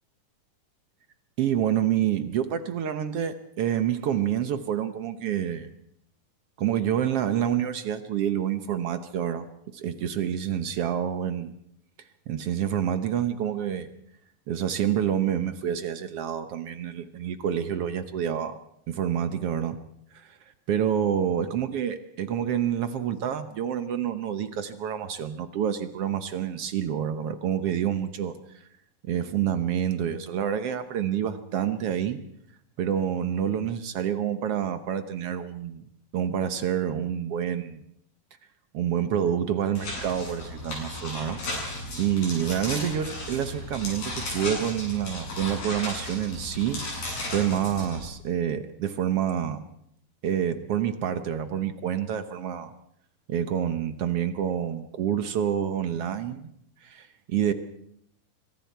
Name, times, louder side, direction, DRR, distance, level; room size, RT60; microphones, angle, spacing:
voice 1, 1.4-5.7 6.6-9.5 9.7-11.5 12.3-13.9 14.5-18.6 18.9-19.8 20.1-20.4 20.7-28.4 29.0-32.2 32.8-35.8 36.1-37.8 38.7-41.4 42.0-49.6 50.2-52.7 53.3-56.5 56.8-57.5, right 9 dB, 70° right, 10 dB, 1.4 m, -28 dB
sound 1, 39.8-48.0, left 1 dB, 70° left, 9.7 m, -35 dB
25.0 x 24.5 x 4.6 m, 0.73 s
omnidirectional pair, 4.1 m